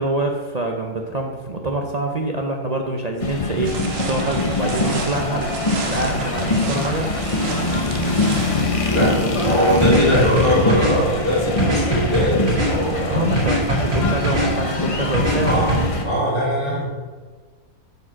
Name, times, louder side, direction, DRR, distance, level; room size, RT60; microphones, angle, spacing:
voice 1, 0.0-3.7 4.1-5.5 5.8-7.1 8.7-9.8 13.0-15.6 16.6-16.8, right 2 dB, 45° right, 2 dB, 0.5 m, -26 dB
sound 1, 3.2-16.0, left 2 dB, 30° left, 0.8 m, -23 dB
sound 2, 3.6-8.6, right 4 dB, 65° right, 1.3 m, -32 dB
voice 2, 9.4-12.4 12.6-13.2 15.4-15.7 16.0-16.8, equal, 85° left, -6 dB, 3.2 m, -20 dB
sound 3, 9.8-10.9 11.6-12.7 13.4-14.5 15.1-15.8, right 1 dB, 85° right, 3.5 m, -21 dB
7.9 x 5.0 x 6.1 m, 1.4 s
omnidirectional pair, 1.5 m